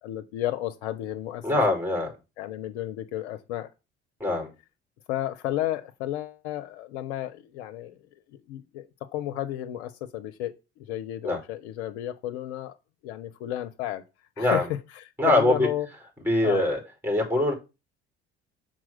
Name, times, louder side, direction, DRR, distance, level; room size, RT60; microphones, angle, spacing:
voice 1, 0.0-1.5 2.4-3.7 5.1-8.0 8.3-12.7 13.0-14.0 14.4-14.7 14.9-15.9 16.4-16.7, left 13 dB, 70° left, 0.8 m, -32 dB
voice 2, 1.4-2.1 4.2-4.5 11.2-11.4 14.4-14.6 15.2-15.7 16.2-17.5, left 1 dB, 5° right, 4.9 m, -23 dB
6.1 x 4.1 x 6.3 m
figure-of-eight pair, 55°, 34 cm